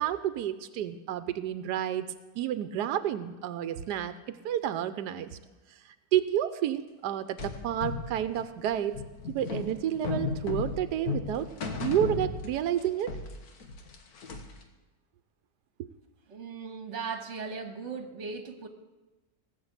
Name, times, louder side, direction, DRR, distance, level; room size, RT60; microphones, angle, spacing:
voice 1, 0.0-5.4 5.7-9.0 9.3-11.5 11.8-13.1 15.8-15.9, right 11 dB, 90° right, 12 dB, 1.2 m, -30 dB
sound 1, 7.4-12.8 13.1-14.6, left 5 dB, 70° left, 1.8 m, -35 dB
voice 2, 16.3-18.7, right 5 dB, 45° right, 6 dB, 1.6 m, -38 dB
18.0 x 7.3 x 8.1 m, 1.1 s
omnidirectional pair, 1.7 m